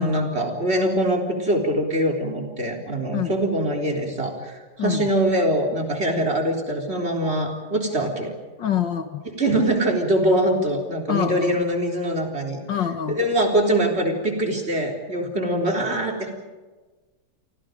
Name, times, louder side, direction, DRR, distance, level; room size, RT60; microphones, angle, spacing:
voice 1, 0.0-8.3 9.4-12.6 13.1-16.3, right 1 dB, 35° right, 2 dB, 3.9 m, -23 dB
voice 2, 8.6-9.2 11.1-11.5 12.7-13.2, left 9 dB, 75° left, 8 dB, 2.1 m, -26 dB
30.0 x 24.0 x 5.2 m, 1.3 s
omnidirectional pair, 2.0 m